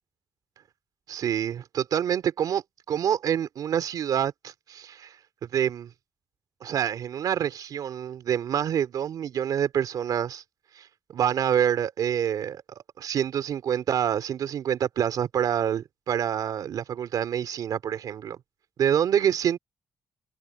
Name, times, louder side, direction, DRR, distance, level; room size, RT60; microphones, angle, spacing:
voice 1, 1.1-2.6 2.9-5.1 5.4-5.9 6.6-10.4 10.7-10.9 11.1-18.4 18.8-19.6, right 9 dB, 80° right, 3.1 m, -27 dB
cardioid pair, 110°, 6 cm